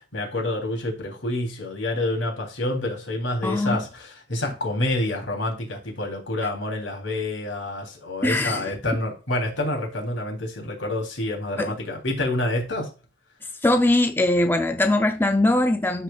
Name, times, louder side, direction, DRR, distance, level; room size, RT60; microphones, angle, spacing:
voice 1, 0.0-12.9, left 1 dB, 75° left, 3.2 m, -28 dB
voice 2, 3.4-3.8 8.2-8.6 11.6-11.7 13.6-16.0, left 1 dB, 10° left, 0.5 m, -21 dB
13.0 x 4.8 x 2.4 m
head